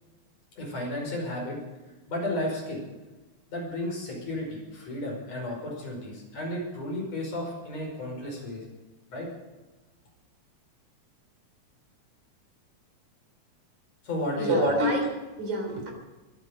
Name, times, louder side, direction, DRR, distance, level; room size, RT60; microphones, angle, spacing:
voice 1, 0.6-1.6 2.1-2.8 3.5-8.6 9.1-9.3 14.0-14.5, left 1 dB, 60° left, -1 dB, 6.4 m, -33 dB
voice 2, 14.4-15.9, right 1 dB, 75° right, 2 dB, 5.3 m, -26 dB
23.0 x 10.5 x 5.2 m, 1.1 s
omnidirectional pair, 3.4 m